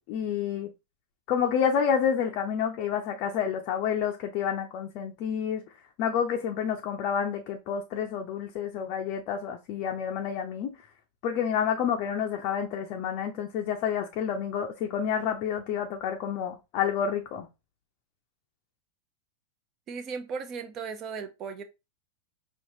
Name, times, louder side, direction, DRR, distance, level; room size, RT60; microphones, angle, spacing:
voice 1, 0.1-0.7 1.3-5.6 6.0-10.8 11.2-17.5, left 8 dB, 40° left, 0.5 m, -29 dB
voice 2, 19.9-21.6, right 5 dB, 35° right, 0.7 m, -36 dB
5.3 x 2.5 x 2.7 m
figure-of-eight pair, 90°, 0 cm